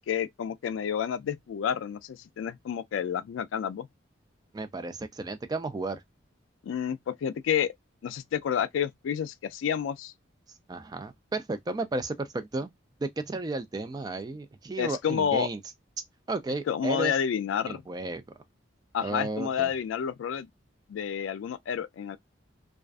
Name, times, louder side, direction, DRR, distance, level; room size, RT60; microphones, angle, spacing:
voice 1, 0.0-3.9 6.6-7.7 8.0-10.1 14.8-15.5 16.7-17.8 18.9-20.5 20.9-22.2, left 8 dB, 80° left, 0.3 m, -29 dB
voice 2, 4.5-6.0 10.7-12.7 13.0-15.6 16.3-17.2 17.7-18.2 19.0-19.7, right 2 dB, 20° right, 0.3 m, -33 dB
2.3 x 2.2 x 2.4 m
head